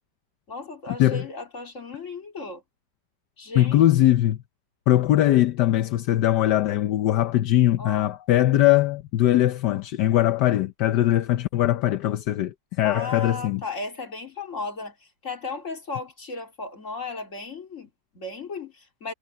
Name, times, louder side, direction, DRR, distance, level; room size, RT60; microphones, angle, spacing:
voice 1, 0.5-2.6 3.4-3.9 7.8-8.2 12.8-19.1, left 3 dB, 45° left, 3.4 m, -35 dB
voice 2, 3.5-4.4 4.9-13.6, left 13 dB, 80° left, 1.3 m, -21 dB
omnidirectional pair, 1.8 m